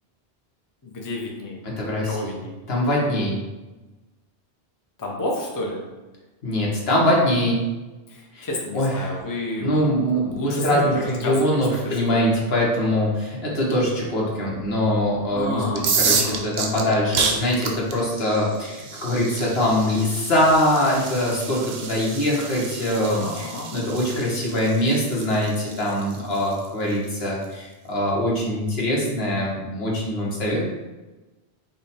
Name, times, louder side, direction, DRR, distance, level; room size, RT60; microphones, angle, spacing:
voice 1, 0.8-1.6 1.9-2.5 5.0-5.8 8.1-12.2 12.6-12.7 15.3-16.4 23.0-23.7, left 1 dB, 25° left, -1 dB, 0.6 m, -31 dB
voice 2, 1.8-2.3 2.7-3.4 6.4-7.6 8.3-8.5 8.7-9.1 9.6-30.6, left 1 dB, 70° left, -4 dB, 1.3 m, -23 dB
sound 1, 15.7-27.4, right 5 dB, 75° right, 0.9 m, -30 dB
5.3 x 2.2 x 4.1 m, 1.2 s
omnidirectional pair, 1.1 m